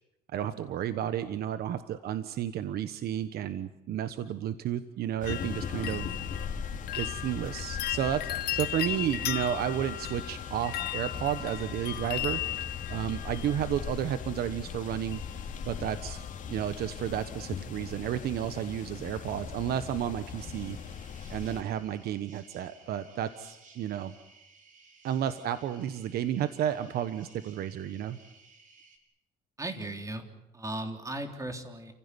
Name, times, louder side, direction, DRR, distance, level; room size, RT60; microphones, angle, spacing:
voice 1, 0.3-6.1 7.0-12.4 12.9-15.2 15.6-20.8 21.3-24.1 25.0-28.2, right 10 dB, 65° right, 11 dB, 1.2 m, -32 dB
sound 1, 5.2-21.6, left 7 dB, 50° left, 3.1 m, -39 dB
sound 2, 5.3-14.2 15.1-15.6 15.9-16.5 16.8-16.9, left 13 dB, 70° left, 0.9 m, -37 dB
sound 3, 20.4-29.0, right 4 dB, 50° right, 5.4 m, -57 dB
voice 2, 29.6-30.3 30.5-31.9, right 1 dB, 20° right, 5 dB, 3.6 m, -36 dB
29.0 x 16.0 x 9.8 m, 0.92 s
cardioid pair, 110°, 17 cm